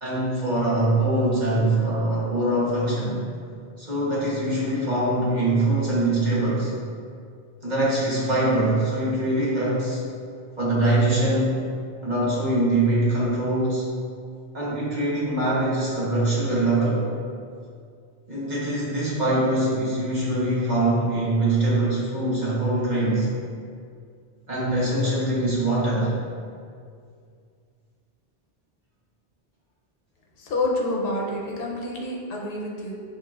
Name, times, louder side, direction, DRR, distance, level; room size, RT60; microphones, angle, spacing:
voice 1, 0.0-3.3 3.8-6.7 7.6-10.0 10.6-11.7 12.0-14.0 14.5-17.1 18.3-23.3 24.5-26.2, right 1 dB, 45° right, -7 dB, 1.3 m, -23 dB
voice 2, 30.4-33.0, left 2 dB, 70° left, -2 dB, 0.9 m, -28 dB
6.5 x 3.2 x 2.5 m, 2.2 s
omnidirectional pair, 1.0 m